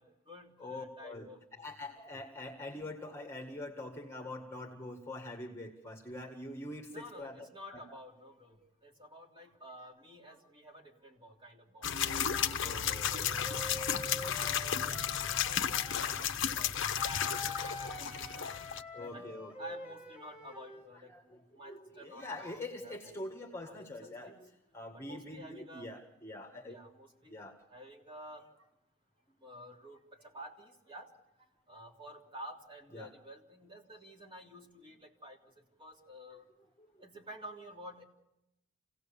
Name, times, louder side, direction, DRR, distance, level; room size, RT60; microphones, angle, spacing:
voice 1, 0.0-1.7 6.9-12.3 12.8-16.3 16.5-18.0 18.4-18.6 19.1-19.3 19.6-22.6 22.8-23.0 23.6-24.5 24.9-25.9 26.7-27.4 27.7-28.7 29.4-31.1 31.7-35.4 35.8-36.4 37.0-38.0, equal, 25° right, 0 dB, 3.1 m, -51 dB
voice 2, 0.6-1.3 1.6-8.0 12.6-14.5 14.9-15.0 16.1-16.6 17.1-17.3 17.6-17.7 18.2-18.3 18.9-19.7 21.1-21.2 21.6-24.5 24.7-26.8 27.3-27.5 32.9-33.1, left 2 dB, 15° left, 2 dB, 1.8 m, -45 dB
sound 1, 11.8-18.8, left 8 dB, 60° left, 0.9 m, -33 dB
Wind instrument woodwind instrument, 11.9-16.2 17.0-20.9, left 2 dB, 5° right, 3.4 m, -46 dB
27.5 x 17.5 x 7.1 m, 0.89 s
head